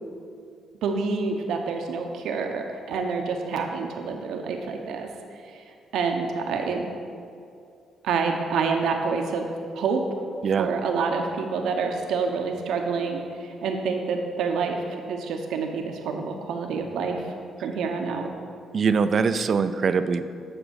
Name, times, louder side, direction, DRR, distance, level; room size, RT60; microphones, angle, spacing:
voice 1, 0.8-5.1 5.9-6.9 8.0-9.4 9.7-10.0 10.6-14.8 15.1-17.2 17.6-18.3, right 5 dB, 80° right, 3 dB, 0.8 m, -27 dB
voice 2, 18.7-20.2, right 5 dB, 50° right, 11 dB, 0.5 m, -22 dB
7.8 x 6.1 x 6.4 m, 2.4 s
cardioid pair, 90°, 0 cm